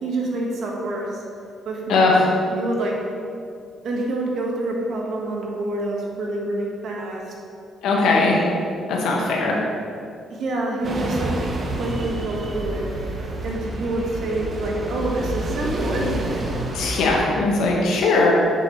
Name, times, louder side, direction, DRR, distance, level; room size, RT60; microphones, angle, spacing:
voice 1, 0.0-1.2 1.6-2.2 2.5-2.9 3.8-7.2 10.3-11.3 11.7-12.9 13.4-16.5, right 2 dB, 65° right, -1 dB, 1.5 m, -27 dB
voice 2, 7.8-8.4 8.9-9.6 16.7-18.3, left 3 dB, 85° left, -2 dB, 1.5 m, -19 dB
sound 1, 10.8-17.2, right 1 dB, 45° right, 1.1 m, -29 dB
7.7 x 6.6 x 3.2 m, 2.5 s
cardioid pair, 90°, 0 cm